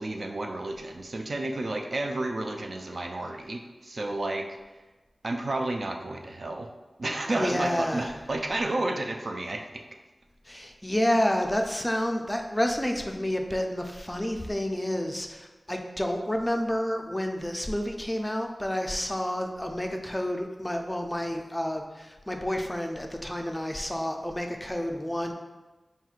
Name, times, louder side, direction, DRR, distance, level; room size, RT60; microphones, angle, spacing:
voice 1, 0.0-4.5 5.2-6.7 7.0-9.7, right 2 dB, 60° right, 3 dB, 0.4 m, -31 dB
voice 2, 7.3-8.1 10.5-25.3, equal, 10° left, 3 dB, 0.4 m, -29 dB
4.3 x 3.8 x 2.4 m, 1.2 s
wide cardioid pair, 60°, 0 cm